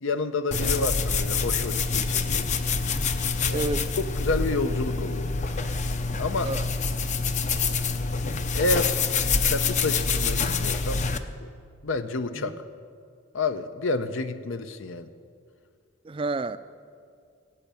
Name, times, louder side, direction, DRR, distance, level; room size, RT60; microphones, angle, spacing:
voice 1, 0.0-2.5 3.5-3.7 4.2-5.3 6.2-6.5 8.2-9.0 9.4-11.0 11.4-11.5 11.8-12.6 13.3-15.1, left 3 dB, 75° left, 11 dB, 0.8 m, -29 dB
sound 1, 0.5-11.2, left 4 dB, 35° left, 0.6 m, -26 dB
voice 2, 3.5-3.9 6.4-6.7 12.3-12.6 16.0-16.6, right 3 dB, 25° right, 13 dB, 0.4 m, -31 dB
16.0 x 8.3 x 8.8 m, 2.2 s
head